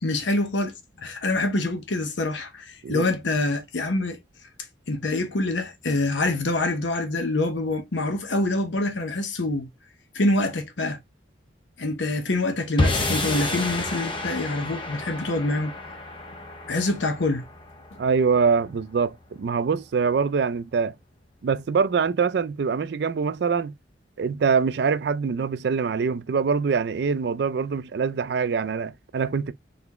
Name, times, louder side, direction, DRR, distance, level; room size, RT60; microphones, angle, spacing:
voice 1, 0.0-4.2 4.9-9.7 10.1-11.0 11.8-15.7 16.7-17.4, left 2 dB, 80° left, 0.9 m, -26 dB
China End, 12.8-19.1, left 2 dB, 25° left, 0.6 m, -30 dB
voice 2, 18.0-20.9 21.4-23.7 24.2-29.5, right 5 dB, 60° right, 0.3 m, -24 dB
3.9 x 3.4 x 2.9 m
head